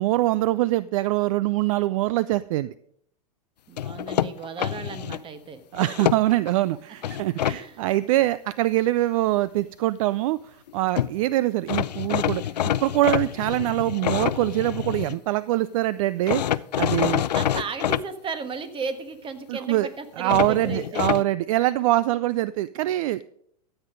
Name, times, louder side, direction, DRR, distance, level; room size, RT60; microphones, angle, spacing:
voice 1, 0.0-2.7 5.7-12.6 12.8-17.2 19.5-19.9 20.2-23.2, right 16 dB, 55° right, 18 dB, 0.4 m, -24 dB
voice 2, 3.7-5.6 7.3-7.8 17.3-21.1, right 5 dB, 25° right, 10 dB, 1.5 m, -35 dB
sound 1, 3.8-5.2 5.7-6.5 7.0-7.6 10.7-10.8 11.0-11.1 11.7-15.2 16.3-18.0 20.3-21.2, left 11 dB, 80° left, 0.5 m, -26 dB
13.5 x 8.1 x 5.2 m, 0.69 s
hypercardioid pair, 100°, 21 cm